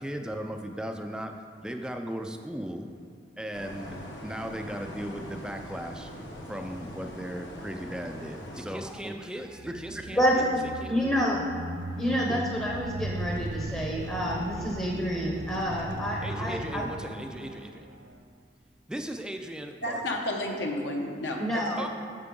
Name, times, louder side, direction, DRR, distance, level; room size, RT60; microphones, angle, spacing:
voice 1, 0.0-1.3 1.6-2.9 3.4-4.0 4.2-6.1 6.5-11.4 12.3-12.4 16.2-17.9 18.9-20.2 21.8-21.9, equal, 5° right, 5 dB, 0.3 m, -37 dB
sound 1, 3.5-8.6, equal, 85° left, 1.4 m, -42 dB
sound 2, 9.4-18.2, right 2 dB, 70° right, 0.5 m, -38 dB
voice 2, 10.1-10.6 10.9-11.4 12.0-16.9 21.4-21.8, equal, 15° left, -2 dB, 0.7 m, -28 dB
voice 3, 19.8-21.6, left 1 dB, 70° left, 1 dB, 0.9 m, -31 dB
9.6 x 6.7 x 3.7 m, 2.3 s
head